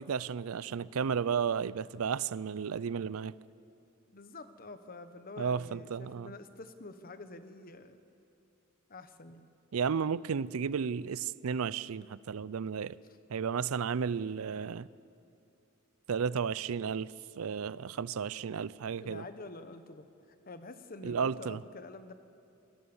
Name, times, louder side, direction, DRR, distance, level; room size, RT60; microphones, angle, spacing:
voice 1, 0.0-3.3 5.4-6.3 9.7-13.0 13.3-14.9 16.1-19.2 21.0-21.6, right 6 dB, 85° right, 19 dB, 0.5 m, -33 dB
voice 2, 4.1-8.0 8.9-9.5 19.0-20.1 20.5-22.1, left 2 dB, 45° left, 10 dB, 1.2 m, -47 dB
25.5 x 19.0 x 7.2 m, 2.6 s
head